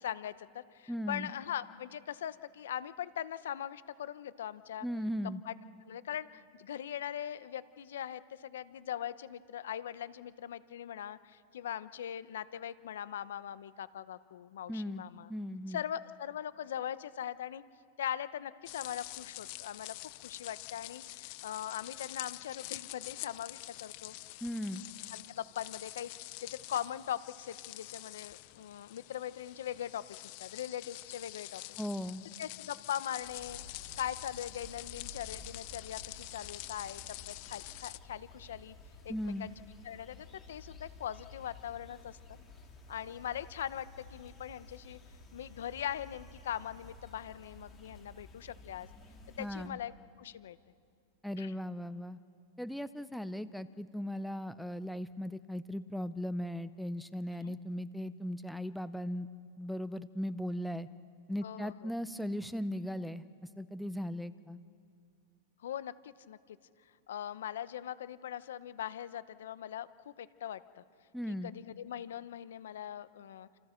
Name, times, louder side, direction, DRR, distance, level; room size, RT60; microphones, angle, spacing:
voice 1, 0.0-4.9 5.5-5.6 5.9-15.3 15.7-17.6 18.0-20.0 20.2-24.1 25.1-31.6 32.4-33.6 34.0-38.7 39.0-39.5 39.8-42.4 42.9-45.0 45.3-48.9 49.4-49.9 50.2-50.6 51.4-51.5 57.4-57.6 61.4-61.9 65.6-66.4 67.1-70.8 71.3-73.6, left 10 dB, 85° left, 15 dB, 0.8 m, -41 dB
voice 2, 0.9-1.3 4.8-5.4 14.7-15.0 15.3-15.8 24.4-24.8 31.8-32.2 39.1-39.5 49.4-49.8 51.2-52.2 52.6-59.3 59.6-60.9 61.3-63.2 63.6-64.6 71.1-71.5, equal, ahead, 13 dB, 0.7 m, -38 dB
sound 1, 18.7-38.0, left 20 dB, 55° left, 0.6 m, -46 dB
sound 2, 33.2-49.7, left 2 dB, 25° left, 4.2 m, -53 dB
28.5 x 28.0 x 4.5 m, 2.4 s
hypercardioid pair, 125°, 0 cm